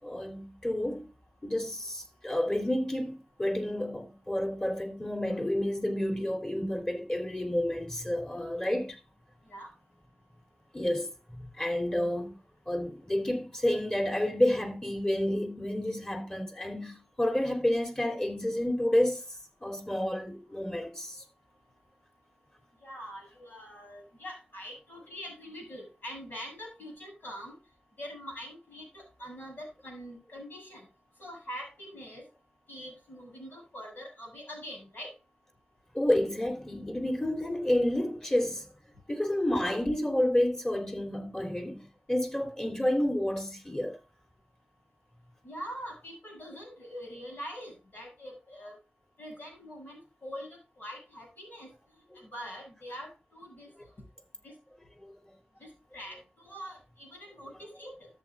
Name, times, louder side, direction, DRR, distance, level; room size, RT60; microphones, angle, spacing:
voice 1, 0.0-1.1 1.4-9.0 10.7-12.3 12.6-19.2 19.6-21.2 35.9-38.7 39.1-44.0 52.1-52.2, left 1 dB, 20° left, 3.4 m, -30 dB
voice 2, 22.8-27.6 28.0-30.8 31.2-32.2 32.7-35.1 45.4-48.7 49.2-51.7 52.2-53.7 54.4-54.5 55.6-55.7 55.9-56.2 56.5-58.1, equal, 80° left, 7.0 m, -43 dB
13.5 x 8.6 x 2.5 m
wide cardioid pair, 55°, 3 cm